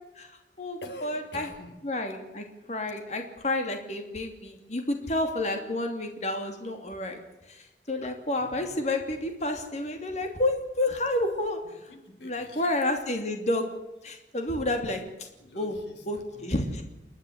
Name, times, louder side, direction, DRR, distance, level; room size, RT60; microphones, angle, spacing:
voice 1, 0.1-1.5 1.8-7.2 7.5-11.9 12.2-13.7 14.0-15.3 15.5-15.8 16.1-16.8, left 1 dB, 40° left, 4 dB, 2.9 m, -30 dB
voice 2, 0.8-1.8 8.4-8.8 11.9-12.6 15.4-16.8, left 1 dB, 80° left, 8 dB, 3.6 m, -46 dB
29.0 x 12.0 x 8.2 m, 0.99 s
head